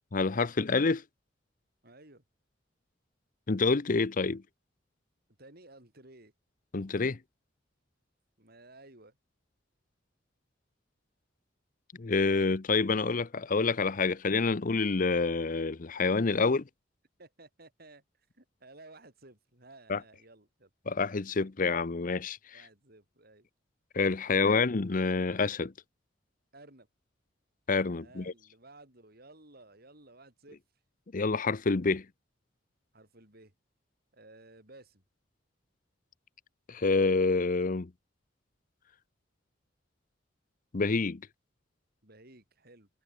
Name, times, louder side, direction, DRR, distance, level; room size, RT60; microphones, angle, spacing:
voice 1, 0.1-1.0 3.5-4.4 6.7-7.2 12.0-16.6 19.9-20.0 20.9-22.6 23.9-25.7 27.7-28.3 31.1-32.0 36.7-37.9 40.7-41.2, left 4 dB, 45° left, 0.7 m, -27 dB
voice 2, 1.8-2.2 5.4-6.3 8.4-9.2 17.2-20.7 22.5-23.5 24.2-24.6 26.5-26.9 28.0-30.6 32.9-33.5 34.1-35.0 42.0-42.9, right 2 dB, 55° right, 7.1 m, -55 dB
head